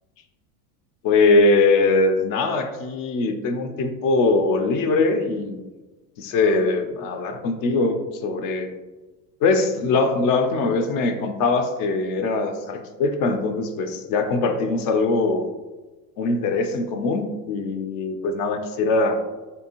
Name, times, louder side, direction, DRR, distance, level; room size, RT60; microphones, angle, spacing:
voice 1, 1.0-5.6 6.2-8.7 9.4-15.4 16.2-19.2, left 3 dB, 45° left, 7 dB, 0.4 m, -21 dB
3.2 x 2.6 x 2.8 m, 1.2 s
supercardioid pair, 105°, 48 cm